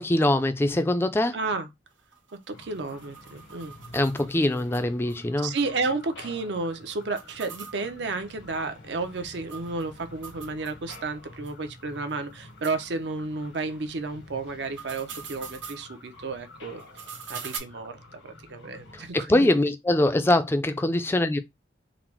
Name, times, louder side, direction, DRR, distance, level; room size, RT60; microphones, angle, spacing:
voice 1, 0.0-1.4 3.9-5.5 18.9-21.4, left 1 dB, 10° left, 0.3 m, -23 dB
voice 2, 1.3-1.7 2.5-3.7 4.1-4.3 5.4-16.8 17.3-19.5, right 3 dB, 65° right, 0.6 m, -32 dB
sound 1, 1.9-5.2 5.5-5.6 5.8-5.9 7.0-11.0 11.4-11.5 12.1-12.2 12.6-12.8 14.5-15.8 16.8-17.6, right 7 dB, 85° right, 1.2 m, -43 dB
sound 2, 2.5-19.1, left 2 dB, 90° left, 1.0 m, -49 dB
3.8 x 2.0 x 4.4 m
head